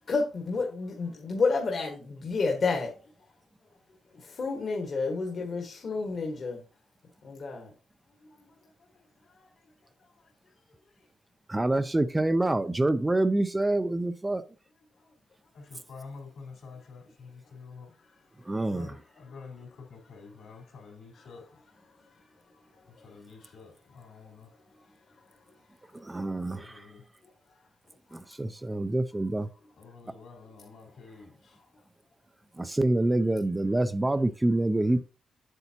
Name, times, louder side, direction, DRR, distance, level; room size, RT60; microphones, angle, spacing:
voice 1, 0.1-2.9 4.1-6.6 7.2-7.7 8.2-8.5 9.3-9.5 22.0-22.1 22.5-22.9 24.7-24.8 25.3-25.4 27.5-27.6, left 4 dB, 50° left, 1.5 m, -31 dB
voice 2, 11.5-14.4 18.5-18.9 25.9-26.9 28.1-29.5 32.6-35.0, right 2 dB, 15° right, 0.5 m, -26 dB
voice 3, 15.5-18.0 18.3-21.7 22.9-24.6 26.3-27.1 29.7-31.7, left 4 dB, 75° left, 4.0 m, -48 dB
8.0 x 7.0 x 2.9 m
cardioid pair, 115°, 0 cm